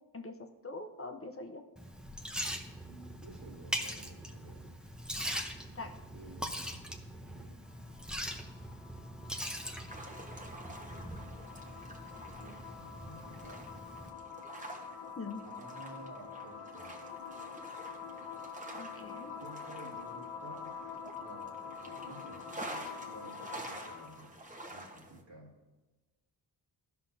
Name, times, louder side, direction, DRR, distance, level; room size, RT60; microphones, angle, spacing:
voice 1, 0.1-1.7 5.7-6.0 15.2-15.4 18.7-19.3, left 3 dB, 30° left, 5 dB, 0.7 m, -43 dB
Liquid, 1.8-14.1, equal, ahead, 0.7 m, -42 dB
voice 2, 2.8-4.7 6.1-7.6 10.5-11.4 12.4-13.8 15.4-16.9 19.4-20.8 21.2-24.3 24.7-25.6, right 2 dB, 80° right, -3 dB, 2.1 m, -53 dB
sound 1, 7.6-24.3, left 6 dB, 85° left, 0.8 m, -47 dB
sound 2, 9.9-25.2, right 1 dB, 15° right, 1.1 m, -49 dB
13.5 x 5.8 x 2.7 m, 1.2 s
cardioid pair, 85°, 44 cm